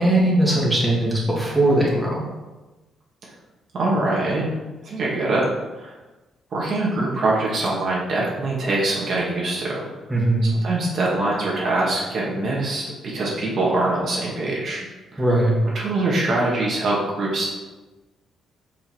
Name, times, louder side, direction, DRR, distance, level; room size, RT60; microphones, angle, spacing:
voice 1, 0.0-2.2 10.1-10.5 15.2-15.5, right 1 dB, 5° right, -6 dB, 2.4 m, -19 dB
voice 2, 3.7-4.4 4.8-5.5 5.7-5.9 6.5-9.9 10.4-12.8 13.1-14.8 15.1-15.2 15.7-17.5, right 2 dB, 55° right, -5 dB, 2.2 m, -23 dB
5.4 x 5.3 x 4.6 m, 1.1 s
cardioid pair, 90°, 0 cm